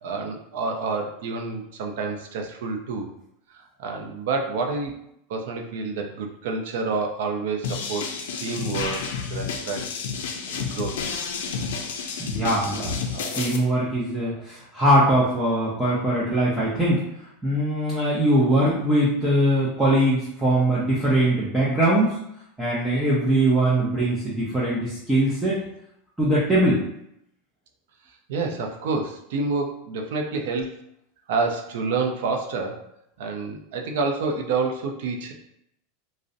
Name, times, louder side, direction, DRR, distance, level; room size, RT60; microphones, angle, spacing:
voice 1, 0.0-3.1 3.5-4.9 5.3-8.0 8.4-9.8 10.5-10.9 13.1-13.5 28.3-30.7 31.3-32.8 33.2-35.3, right 4 dB, 70° right, 2 dB, 0.4 m, -28 dB
sound 1, 7.6-13.6, left 5 dB, 85° left, 0.4 m, -30 dB
voice 2, 12.2-12.9 13.3-17.0 17.4-22.2 22.6-25.6 26.2-26.8, right 1 dB, 5° right, -8 dB, 0.4 m, -21 dB
2.5 x 2.0 x 2.5 m, 0.76 s
supercardioid pair, 155°, 0 cm